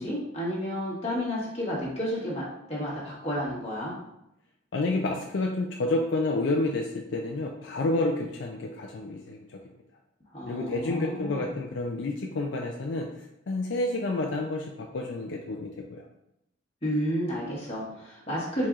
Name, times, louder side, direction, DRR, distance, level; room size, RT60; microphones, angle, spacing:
voice 1, 0.0-2.4 2.7-4.0 10.3-11.4 16.8-18.7, equal, 30° left, -6 dB, 1.5 m, -31 dB
voice 2, 4.7-9.6 10.5-13.1 13.5-16.0, left 2 dB, 65° left, 1 dB, 0.4 m, -29 dB
4.6 x 4.1 x 2.4 m, 0.84 s
head